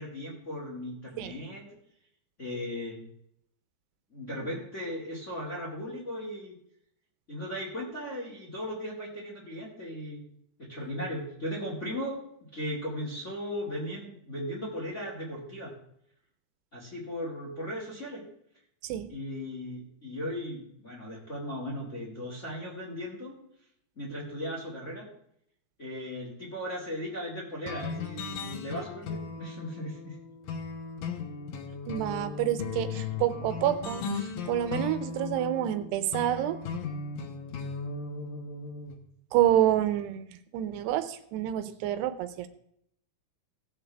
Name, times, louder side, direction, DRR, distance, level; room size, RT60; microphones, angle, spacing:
voice 1, 0.0-1.6 2.4-3.0 4.1-6.5 7.3-10.2 10.6-12.2 12.5-15.7 16.7-18.2 19.1-23.3 23.9-25.1 25.8-30.1, equal, 30° left, -3 dB, 1.5 m, -37 dB
sound 1, 27.7-39.0, left 5 dB, 70° left, 2.3 m, -37 dB
voice 2, 31.9-36.6 39.3-40.3 40.5-42.5, right 12 dB, 80° right, 11 dB, 2.8 m, -28 dB
18.0 x 7.5 x 3.4 m, 0.73 s
omnidirectional pair, 4.8 m